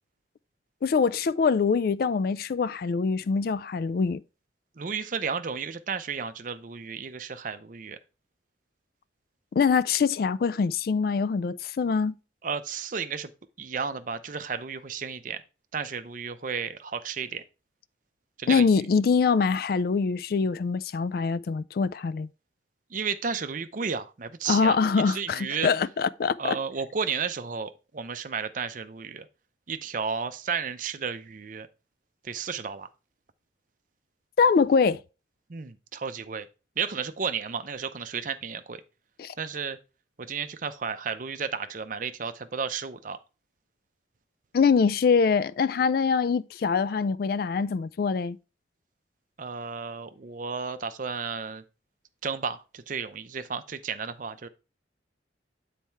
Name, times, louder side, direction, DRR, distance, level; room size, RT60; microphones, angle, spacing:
voice 1, 0.8-4.2 9.5-12.2 18.5-22.3 24.5-26.6 34.4-35.0 39.2-39.3 44.5-48.4, left 5 dB, 50° left, 0.3 m, -24 dB
voice 2, 4.8-8.0 12.4-13.3 13.6-15.4 15.7-17.4 18.4-18.7 22.9-25.7 26.4-29.3 29.7-31.7 32.2-32.9 35.5-36.5 36.8-38.8 39.4-39.8 40.2-43.2 49.4-51.6 52.2-54.5, right 6 dB, 45° right, 0.5 m, -33 dB
7.4 x 4.2 x 4.5 m
head